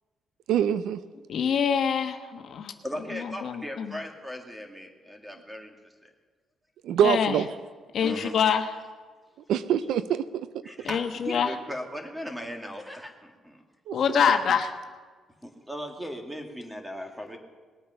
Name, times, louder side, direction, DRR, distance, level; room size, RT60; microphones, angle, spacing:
voice 1, 0.5-1.0 6.8-7.5 9.5-10.6 13.9-14.2, right 9 dB, 80° right, 14 dB, 0.5 m, -25 dB
voice 2, 1.3-2.7 3.1-4.0 7.0-7.3 7.9-8.7 10.8-11.5 13.9-14.7, left 7 dB, 65° left, 6 dB, 1.2 m, -25 dB
voice 3, 2.8-5.7 6.0-6.1 8.0-8.4 10.6-13.6 15.4-17.4, equal, 5° right, 4 dB, 2.1 m, -38 dB
19.5 x 8.6 x 5.7 m, 1.5 s
cardioid pair, 90°, 0 cm